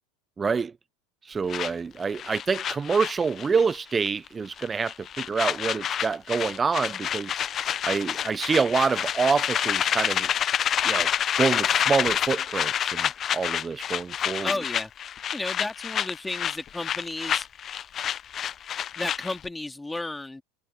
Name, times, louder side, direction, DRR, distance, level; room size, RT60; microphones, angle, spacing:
voice 1, 0.4-0.7 1.3-7.4 7.8-10.3 10.8-11.1 11.4-14.5, right 5 dB, 20° right, 0.6 m, -26 dB
sound 1, 1.5-3.8 4.0-4.3 4.6-19.5, left 9 dB, 35° left, 0.7 m, -28 dB
voice 2, 14.4-14.9 15.3-17.5 19.0-20.4, left 2 dB, 10° left, 2.8 m, -33 dB
figure-of-eight pair, 80°, 0 cm